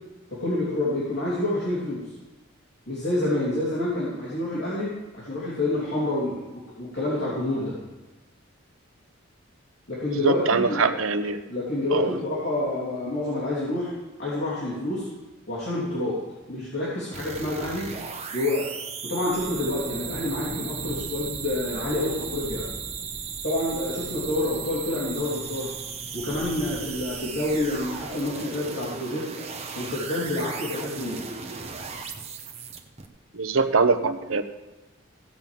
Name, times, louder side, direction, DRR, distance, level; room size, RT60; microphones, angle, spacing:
voice 1, 0.3-2.1 2.9-7.8 9.9-11.0 11.5-13.9 14.2-15.1 15.5-16.2 16.5-17.9 18.3-18.7 19.0-22.7 23.4-25.7 26.1-29.3 29.7-31.2, left 1 dB, 55° left, -8 dB, 3.1 m, -28 dB
voice 2, 10.2-11.4 11.9-12.1 33.3-34.4, right 4 dB, 80° right, 10 dB, 0.9 m, -23 dB
sound 1, 17.1-33.1, right 6 dB, 30° right, 1.0 m, -36 dB
sound 2, 19.3-28.1, equal, 20° left, 1.8 m, -43 dB
16.0 x 5.4 x 7.6 m, 1.1 s
head